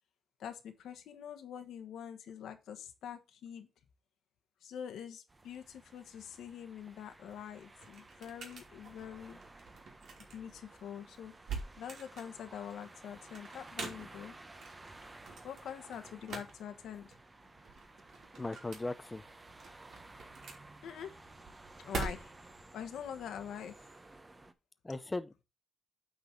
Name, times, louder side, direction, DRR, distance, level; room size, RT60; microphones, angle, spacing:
voice 1, 0.4-3.7 4.6-9.4 10.3-11.3 11.8-14.4 15.4-17.1 20.8-21.2 21.8-22.3 22.7-23.9, left 8 dB, 90° left, 1.3 m, -45 dB
sound 1, 5.3-24.5, right 2 dB, 20° right, 0.8 m, -55 dB
sound 2, 7.1-22.6, right 4 dB, 70° right, 2.9 m, -46 dB
voice 2, 18.4-19.2 24.8-25.4, left 2 dB, 15° left, 0.5 m, -38 dB
8.7 x 4.1 x 6.0 m
cardioid pair, 115°, 0 cm